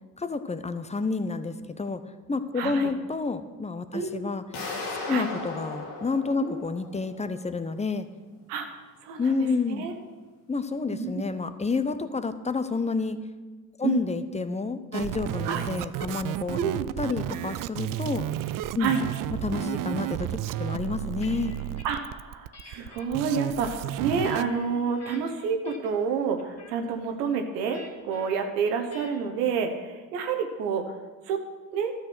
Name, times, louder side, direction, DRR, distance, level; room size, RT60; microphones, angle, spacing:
voice 1, 0.2-2.0 2.3-4.4 5.1-8.1 9.2-9.9 10.5-13.2 13.8-16.6 17.0-18.3 18.7-18.9 19.4-21.6, left 4 dB, 15° left, 11 dB, 0.7 m, -29 dB
voice 2, 2.6-2.9 3.9-4.3 5.1-5.3 6.4-6.6 8.5-8.7 9.0-9.9 10.9-11.1 13.8-14.0 15.4-15.6 16.5-16.9 18.8-19.0 21.8-30.9 31.3-31.4 31.7-31.9, right 6 dB, 80° right, 5 dB, 1.1 m, -29 dB
sound 1, 4.5-7.4, left 3 dB, 75° left, 2.3 m, -36 dB
sound 2, 14.9-24.4, right 13 dB, 45° right, 0.5 m, -32 dB
sound 3, 20.8-22.0 22.5-23.1 23.7-25.2 25.6-26.0 26.4-26.8 27.7-28.3 28.9-29.3, left 3 dB, 35° left, 1.9 m, -49 dB
12.5 x 6.5 x 6.2 m, 1.3 s
hypercardioid pair, 55°, 47 cm